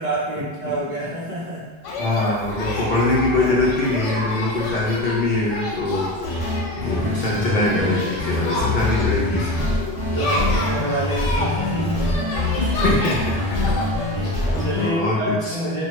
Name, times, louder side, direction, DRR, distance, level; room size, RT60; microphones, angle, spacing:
voice 1, 0.0-1.7 6.8-7.3 10.0-12.3 12.6-12.8 13.6-15.9, right 1 dB, 50° right, -7 dB, 0.5 m, -28 dB
sound 1, 1.8-14.7, left 2 dB, 80° left, 0.9 m, -29 dB
voice 2, 2.0-6.1 6.8-9.6 12.8-13.6 14.8-15.5, left 2 dB, 50° left, -6 dB, 0.6 m, -22 dB
sound 2, 6.2-14.9, left 2 dB, 5° right, 1.1 m, -24 dB
3.0 x 2.2 x 3.0 m, 1.3 s
omnidirectional pair, 1.2 m